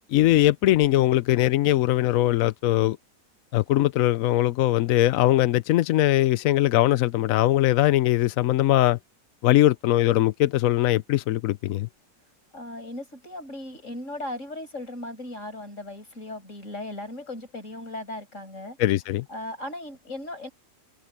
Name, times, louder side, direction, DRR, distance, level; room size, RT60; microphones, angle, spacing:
voice 1, 0.1-3.0 3.5-9.0 9.4-11.9 18.8-19.2, left 14 dB, 70° left, 0.9 m, -21 dB
voice 2, 12.5-18.8 19.3-20.5, left 1 dB, 45° left, 8.2 m, -37 dB
omnidirectional pair, 1.7 m